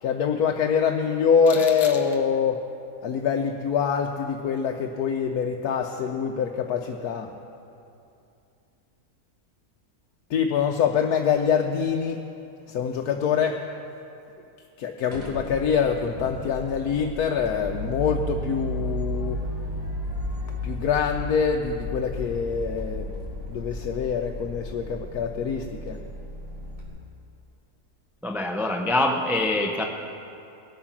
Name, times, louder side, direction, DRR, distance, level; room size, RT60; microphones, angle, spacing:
voice 1, 0.0-2.6 3.0-7.3 10.3-12.2 12.7-13.6 14.8-19.4 20.6-23.1 23.5-26.0, left 6 dB, 85° left, 3 dB, 1.2 m, -25 dB
sound 1, 15.1-26.9, left 1 dB, 20° right, 3.1 m, -34 dB
voice 2, 28.2-29.8, left 2 dB, ahead, 2 dB, 0.6 m, -24 dB
20.0 x 8.6 x 5.9 m, 2.7 s
omnidirectional pair, 1.6 m